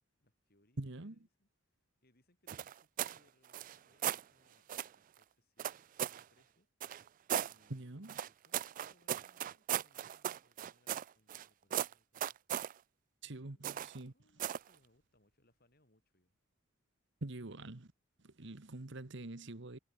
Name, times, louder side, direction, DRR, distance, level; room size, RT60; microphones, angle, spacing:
voice 1, 0.2-1.5 2.0-6.7 7.5-12.4 13.2-13.7 14.0-16.3, left 1 dB, 50° left, 7.4 m, -74 dB
voice 2, 0.8-1.1 7.7-8.2 13.2-14.1 17.2-17.9 18.2-19.8, right 2 dB, 60° right, 1.3 m, -45 dB
sound 1, 2.5-3.2 3.5-4.2 4.7-5.0 5.6-6.2 6.8-7.5 8.1-11.5 11.7-12.7 13.6-14.0 14.4-14.7, right 10 dB, 40° right, 0.3 m, -37 dB
head